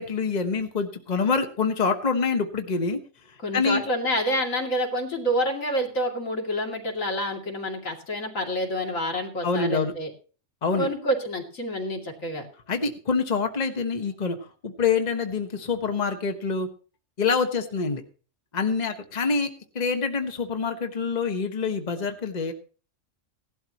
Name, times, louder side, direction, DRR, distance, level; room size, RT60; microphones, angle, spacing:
voice 1, 0.0-3.0 3.5-3.8 9.4-9.9 10.6-10.9 12.7-14.4 14.6-16.7 17.2-18.0 18.5-22.5, left 5 dB, 35° left, 6 dB, 1.3 m, -26 dB
voice 2, 3.4-10.1 10.8-12.5, equal, 80° left, 1 dB, 3.0 m, -28 dB
17.5 x 12.0 x 3.0 m, 0.38 s
omnidirectional pair, 1.4 m